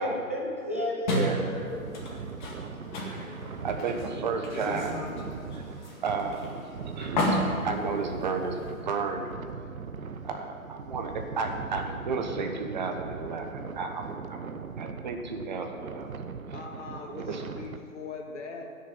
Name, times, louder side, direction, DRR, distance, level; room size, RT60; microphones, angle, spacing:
voice 1, 0.0-1.9 2.8-3.0, left 1 dB, 10° right, -4 dB, 0.5 m, -33 dB
sound 1, 1.1-8.8, left 1 dB, 35° left, 2.0 m, -33 dB
voice 2, 1.1-1.5 3.1-5.0 5.5-5.6 6.0-6.6 6.9-9.3 10.2-14.5 14.8-16.1 17.3-17.4, right 4 dB, 30° right, 4 dB, 1.1 m, -33 dB
sound 2, 1.3-17.8, right 5 dB, 70° right, 0.9 m, -40 dB
voice 3, 16.5-18.6, left 4 dB, 55° left, 2 dB, 1.9 m, -41 dB
9.7 x 6.7 x 8.8 m, 2.2 s
hypercardioid pair, 155°, 43 cm